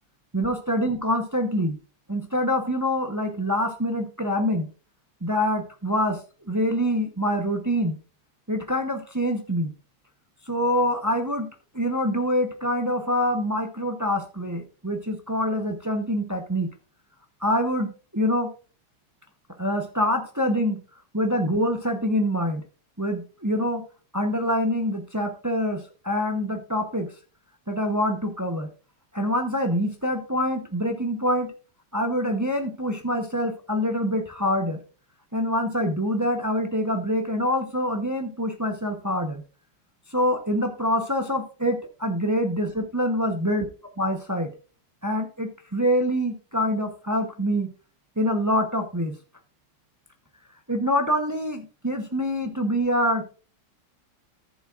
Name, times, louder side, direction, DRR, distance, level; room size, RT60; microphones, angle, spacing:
voice 1, 0.3-1.8 2.1-4.7 5.2-6.2 6.5-8.0 8.5-9.7 10.5-11.5 11.7-16.7 17.4-18.5 19.6-20.8 21.1-22.6 23.0-23.8 24.1-27.1 27.7-28.7 29.1-31.5 31.9-34.8 35.3-39.4 40.1-43.7 44.0-44.5 45.0-47.7 48.2-49.2 50.7-53.3, equal, 20° right, 4 dB, 0.4 m, -25 dB
14.0 x 7.1 x 2.5 m, 0.36 s
omnidirectional pair, 1.9 m